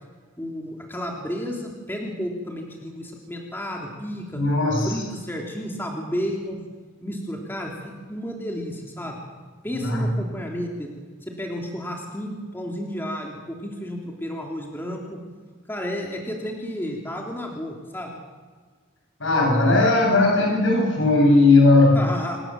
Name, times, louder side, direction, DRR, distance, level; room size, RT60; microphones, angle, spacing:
voice 1, 0.4-4.4 4.8-6.6 7.0-9.2 9.6-10.9 11.2-15.2 15.7-18.1 21.9-22.4, equal, 10° left, 0 dB, 3.4 m, -32 dB
voice 2, 4.3-4.9 9.7-10.1 19.2-22.1, left 2 dB, 65° left, 0 dB, 7.9 m, -17 dB
27.5 x 18.0 x 7.8 m, 1.5 s
head